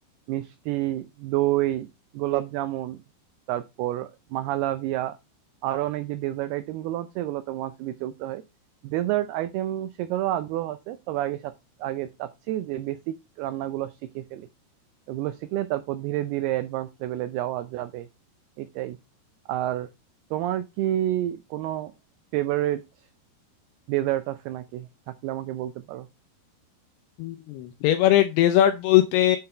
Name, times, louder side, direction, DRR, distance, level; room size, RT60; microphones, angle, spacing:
voice 1, 0.3-1.9 2.1-3.0 3.5-5.2 5.6-8.4 8.8-11.5 11.8-14.5 15.1-18.1 18.6-19.0 19.5-19.9 20.3-21.9 22.3-22.8 23.9-26.1, right 14 dB, 90° right, 2.2 m, -29 dB
voice 2, 27.2-29.4, left 12 dB, 80° left, 2.4 m, -20 dB
7.8 x 5.7 x 4.3 m
omnidirectional pair, 5.2 m